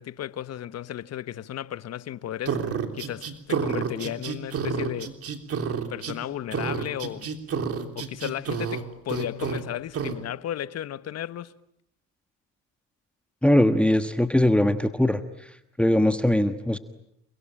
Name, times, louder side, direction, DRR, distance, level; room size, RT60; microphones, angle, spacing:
voice 1, 0.0-2.6 2.9-5.2 5.9-7.3 7.9-11.5, left 11 dB, 50° left, 1.3 m, -34 dB
sound 1, 2.5-6.2 6.5-8.8 9.1-9.6 9.9-10.2, right 6 dB, 45° right, 3.4 m, -29 dB
voice 2, 13.4-15.2 15.8-16.8, left 1 dB, 5° left, 1.4 m, -21 dB
29.5 x 22.5 x 8.9 m
cardioid pair, 105°, 32 cm